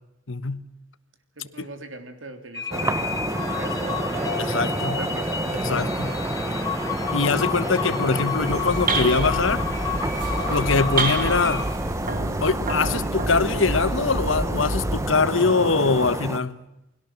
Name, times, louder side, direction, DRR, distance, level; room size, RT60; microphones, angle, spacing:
voice 1, 0.3-0.7 4.4-5.0 5.5-6.2 7.1-9.6 10.5-11.7 12.4-16.6, left 4 dB, 75° left, 1.2 m, -23 dB
voice 2, 1.4-6.8, right 2 dB, 75° right, 3.5 m, -41 dB
sound 1, 2.5-11.6, left 5 dB, 20° left, 4.6 m, -31 dB
sound 2, 2.7-16.4, right 1 dB, 15° right, 1.0 m, -29 dB
sound 3, 8.3-15.3, right 2 dB, 45° right, 2.7 m, -29 dB
29.5 x 21.0 x 7.5 m
head